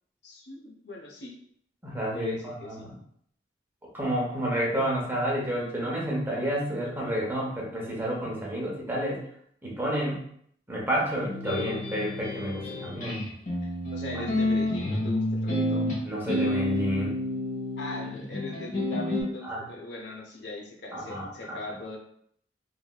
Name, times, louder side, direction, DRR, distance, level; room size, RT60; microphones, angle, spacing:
voice 1, 0.2-1.3 2.1-2.8 13.9-15.9 17.8-22.0, left 2 dB, 70° left, 0 dB, 0.7 m, -40 dB
voice 2, 1.8-3.0 3.9-9.2 9.6-10.2 10.7-13.2 16.0-17.1 19.4-19.6 20.9-21.6, right 1 dB, 10° right, -4 dB, 0.7 m, -30 dB
sound 1, 11.2-19.2, left 1 dB, 45° left, 1.0 m, -29 dB
3.2 x 2.7 x 2.2 m, 0.67 s
head